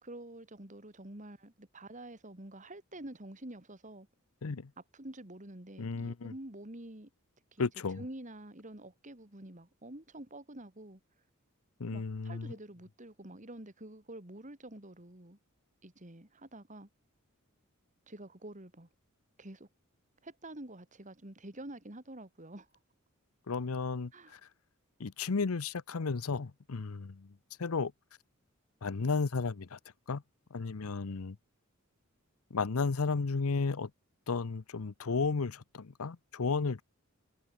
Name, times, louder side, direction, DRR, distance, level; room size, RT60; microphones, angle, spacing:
voice 1, 0.0-4.1 4.9-7.1 7.5-7.7 8.0-11.0 11.9-15.4 15.8-16.9 18.1-18.9 19.4-19.7 20.2-22.7 24.1-24.3, right 1 dB, 35° right, 2.8 m, -48 dB
voice 2, 5.8-6.3 7.6-8.0 11.8-12.6 23.5-24.4 25.0-27.9 28.8-29.8 30.1-30.2 30.5-31.4 32.5-33.9 34.3-36.8, left 4 dB, 85° left, 0.7 m, -33 dB
head